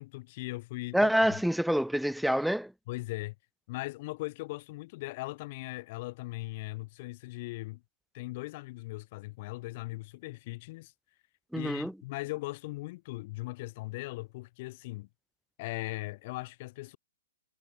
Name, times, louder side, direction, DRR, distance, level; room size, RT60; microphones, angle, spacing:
voice 1, 0.0-1.4 2.9-3.3 3.7-7.8 8.1-10.9 11.5-15.1 15.6-17.0, left 21 dB, 30° left, 4.6 m, -39 dB
voice 2, 0.9-2.7 11.5-11.9, equal, ahead, 1.6 m, -26 dB
hypercardioid pair, 170°, 0 cm